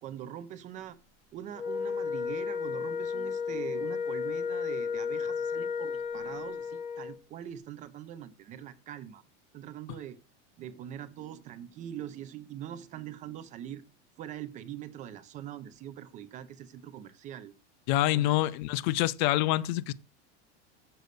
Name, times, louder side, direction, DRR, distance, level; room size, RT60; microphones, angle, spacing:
voice 1, 0.0-1.0 1.3-9.2 9.5-10.2 10.6-13.8 14.2-17.5 18.1-18.6, right 10 dB, 20° right, 0.4 m, -43 dB
Wind instrument woodwind instrument, 1.6-7.2, left 6 dB, 25° left, 0.8 m, -33 dB
voice 2, 17.9-19.9, left 15 dB, 40° left, 0.5 m, -26 dB
7.6 x 6.8 x 6.5 m
supercardioid pair, 160°, 35 cm